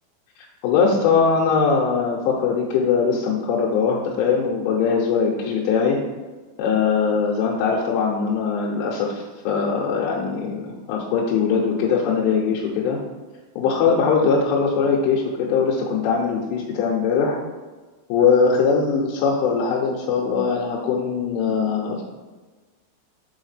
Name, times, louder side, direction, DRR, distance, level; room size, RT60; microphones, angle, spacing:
voice 1, 0.6-6.0 6.6-13.0 13.6-17.4 18.1-22.0, left 5 dB, 90° left, -3 dB, 3.2 m, -21 dB
7.1 x 4.7 x 3.2 m, 1.3 s
omnidirectional pair, 5.4 m